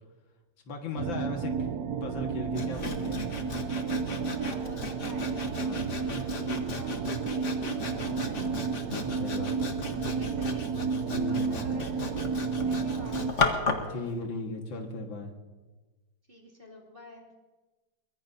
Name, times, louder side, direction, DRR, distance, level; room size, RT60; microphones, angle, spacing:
voice 1, 0.7-1.5 2.0-3.2 5.6-6.3 8.0-8.6 8.9-9.8 11.1-11.6 13.9-15.3, left 2 dB, 70° left, 2 dB, 2.4 m, -37 dB
sound 1, 1.0-13.3, right 5 dB, 75° right, 0.9 m, -32 dB
Sawing, 2.6-13.9, left 4 dB, 40° left, 1.5 m, -35 dB
voice 2, 4.3-8.7 9.8-10.7 11.1-14.1 16.3-17.3, right 1 dB, 25° right, -1 dB, 2.9 m, -48 dB
23.5 x 21.0 x 2.8 m, 1.2 s
omnidirectional pair, 2.2 m